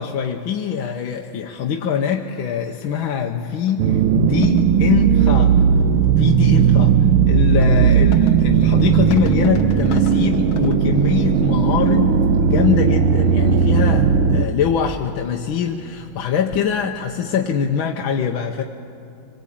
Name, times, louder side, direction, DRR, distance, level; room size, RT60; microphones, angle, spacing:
voice 1, 0.0-5.6 6.2-7.0 7.3-18.6, left 7 dB, 75° left, 2 dB, 1.7 m, -23 dB
sound 1, 0.8-0.9 2.4-2.5 2.8-3.0 3.7-3.9 4.1-6.2 7.3-10.8, left 7 dB, 55° left, 1.3 m, -34 dB
sound 2, 3.8-14.5, right 7 dB, 85° right, 1.7 m, -16 dB
25.0 x 22.0 x 8.6 m, 2.8 s
omnidirectional pair, 2.3 m